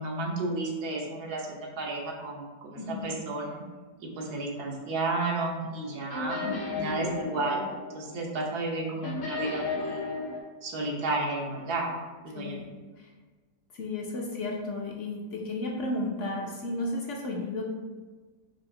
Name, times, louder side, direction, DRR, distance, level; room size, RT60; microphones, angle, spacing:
voice 1, 0.0-3.6 4.2-6.4 6.7-7.7 7.9-10.0 10.6-11.9 12.2-12.6, right 2 dB, 85° right, -2 dB, 1.4 m, -32 dB
voice 2, 2.8-3.1 6.4-7.2 12.3-12.7 13.0-13.1 13.7-17.7, left 2 dB, 65° left, -1 dB, 0.8 m, -34 dB
sound 1, 6.1-8.8 9.0-10.4, left 3 dB, 85° left, 1.5 m, -34 dB
4.9 x 2.5 x 3.8 m, 1.3 s
omnidirectional pair, 1.6 m